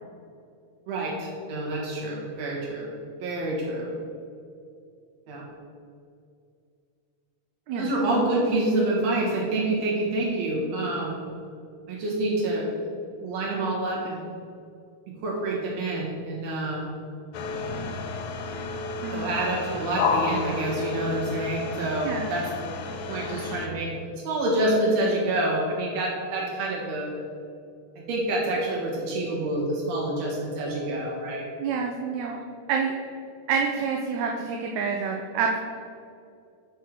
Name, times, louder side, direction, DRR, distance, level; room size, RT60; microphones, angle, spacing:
voice 1, 0.9-2.9 3.2-3.9 5.3-5.4 7.8-11.2 11.9-12.7 13.2-14.2 15.2-16.9 19.1-22.7 23.1-23.9 24.2-27.1 28.1-31.5, right 1 dB, 60° right, -3 dB, 2.8 m, -27 dB
sound 1, 17.3-23.7, left 4 dB, 90° left, 1.2 m, -31 dB
voice 2, 22.0-22.4 31.6-32.4 32.7-32.9 33.5-35.6, right 5 dB, 80° right, 1 dB, 2.0 m, -27 dB
6.7 x 5.0 x 6.3 m, 2.4 s
omnidirectional pair, 3.4 m